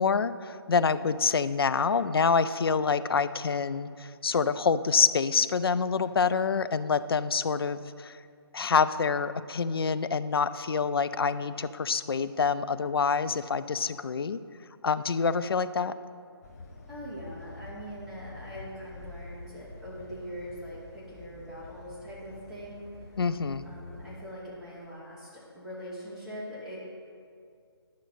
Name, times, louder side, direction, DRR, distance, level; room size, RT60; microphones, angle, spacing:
voice 1, 0.0-8.2 8.5-14.4 14.8-15.9 23.2-23.7, left 5 dB, 65° left, 14 dB, 0.4 m, -26 dB
sound 1, 16.4-24.2, left 3 dB, 35° left, 1.1 m, -47 dB
voice 2, 16.9-23.2 23.6-25.3 25.5-26.8, equal, ahead, -12 dB, 2.5 m, -42 dB
11.5 x 6.2 x 4.1 m, 2.3 s
figure-of-eight pair, 150°, 14 cm